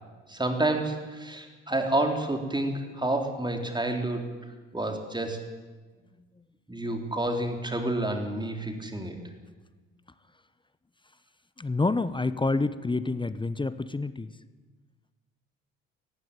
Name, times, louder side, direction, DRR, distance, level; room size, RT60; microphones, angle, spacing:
voice 1, 0.3-4.2 4.7-5.4 6.7-9.2, right 1 dB, 10° right, 4 dB, 4.0 m, -29 dB
voice 2, 11.6-14.3, left 3 dB, 15° left, 15 dB, 0.9 m, -28 dB
18.5 x 15.0 x 9.3 m, 1.3 s
hypercardioid pair, 60°, 37 cm